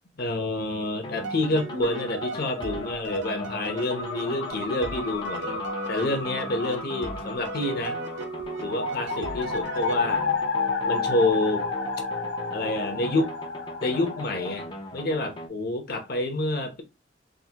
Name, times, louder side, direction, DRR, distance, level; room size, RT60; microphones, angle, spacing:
voice 1, 0.2-8.0 8.6-10.4 10.9-11.7 12.5-13.3 13.8-14.7 14.9-16.8, left 2 dB, 55° left, 0.9 m, -28 dB
sound 1, 1.0-15.5, left 1 dB, 25° left, 0.6 m, -39 dB
sound 2, 1.2-10.5, right 3 dB, 70° right, 0.6 m, -37 dB
sound 3, 1.5-14.7, left 4 dB, 90° left, 0.9 m, -32 dB
3.8 x 2.6 x 2.8 m
head